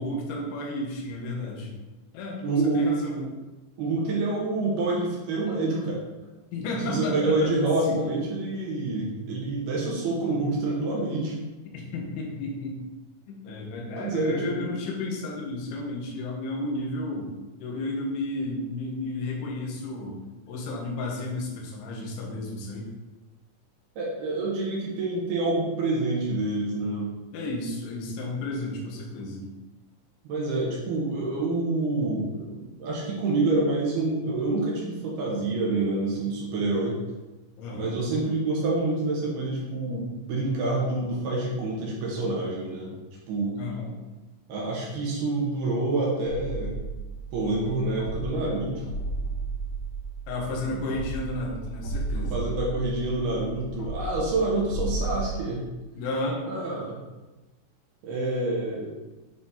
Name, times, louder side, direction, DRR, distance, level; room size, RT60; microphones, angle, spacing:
voice 1, 0.0-1.7 2.1-3.1 6.5-7.5 7.8-8.0 11.7-12.8 13.3-17.3 17.6-20.2 20.5-22.9 27.3-29.5 37.6-37.9 43.5-43.9 50.3-52.5 56.0-56.4, left 2 dB, 75° left, -2 dB, 3.7 m, -32 dB
voice 2, 2.4-3.2 3.8-6.0 6.9-11.4 14.0-14.6 24.0-27.1 30.2-37.0 37.7-42.9 43.3-43.6 44.5-46.7 47.3-48.9 50.9-51.0 52.1-55.6 56.5-57.0 58.0-58.9, right 2 dB, 65° right, -4 dB, 3.0 m, -27 dB
sound 1, 46.3-55.2, right 3 dB, 60° left, 3.6 m, -34 dB
9.1 x 4.3 x 4.2 m, 1.1 s
omnidirectional pair, 5.6 m